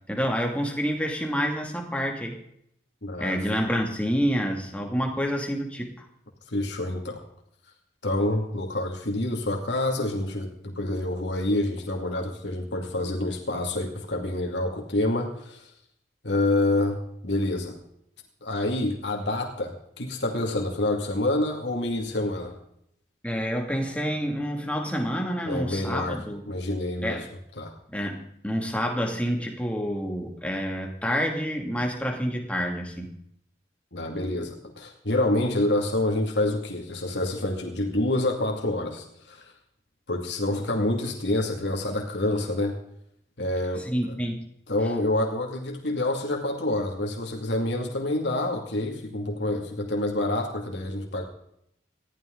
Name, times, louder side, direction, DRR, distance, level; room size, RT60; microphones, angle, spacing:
voice 1, 0.1-2.4 3.2-6.1 23.2-26.4 27.0-27.2 27.9-33.1 43.8-44.4, equal, 5° left, 2 dB, 2.4 m, -28 dB
voice 2, 3.0-3.6 6.5-7.2 8.0-15.7 16.2-17.8 18.4-22.5 25.5-27.2 27.6-27.7 33.9-39.5 40.1-42.8 43.4-44.1 44.7-51.2, left 1 dB, 80° left, 2 dB, 2.4 m, -27 dB
19.5 x 14.5 x 3.9 m, 0.74 s
head